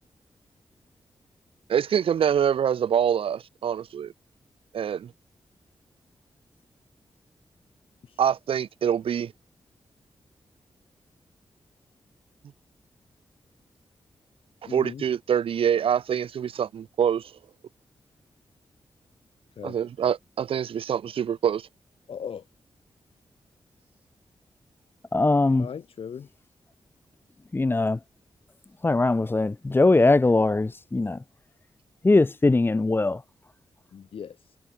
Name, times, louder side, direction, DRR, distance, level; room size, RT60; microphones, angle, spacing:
voice 1, 1.7-4.1 4.7-5.1 8.2-9.3 14.6-17.3 19.6-21.7, right 8 dB, 70° right, 0.5 m, -25 dB
voice 2, 14.6-15.0 19.6-19.7 22.1-22.4 25.6-26.3 33.9-34.4, left 7 dB, 70° left, 1.6 m, -38 dB
voice 3, 25.1-25.7 27.5-28.0 28.8-31.2 32.0-33.2, left 2 dB, 20° left, 1.3 m, -21 dB
wide cardioid pair, 110°, 10 cm